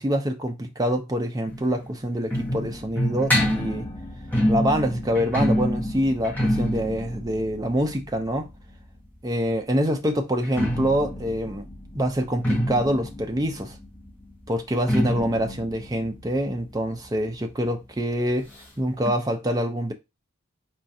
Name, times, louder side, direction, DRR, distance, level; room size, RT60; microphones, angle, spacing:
voice 1, 0.0-3.9 4.5-8.5 9.2-11.6 11.9-13.8 14.5-18.5 18.8-19.9, equal, 15° right, 0.4 m, -25 dB
sound 1, 1.5-9.2 10.3-17.7 17.9-18.0 18.3-18.4 19.1-19.2, equal, 10° left, 0.9 m, -27 dB
4.3 x 2.4 x 2.6 m
head